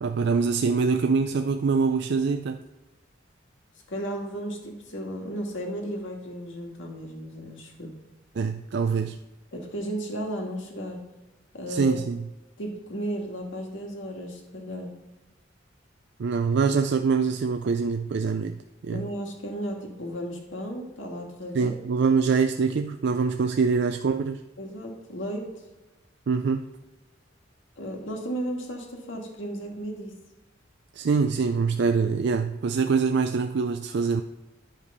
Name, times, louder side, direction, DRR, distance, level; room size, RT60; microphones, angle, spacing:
voice 1, 0.0-2.6 8.4-9.2 11.7-12.2 16.2-18.6 18.8-19.0 21.5-24.4 26.3-26.7 30.9-34.2, right 5 dB, 60° right, 7 dB, 0.4 m, -24 dB
voice 2, 3.9-8.0 9.5-11.1 11.5-12.0 12.6-15.0 18.9-21.8 24.6-25.6 27.8-30.2, equal, 75° left, 2 dB, 1.8 m, -34 dB
10.0 x 5.1 x 5.4 m, 1.1 s
head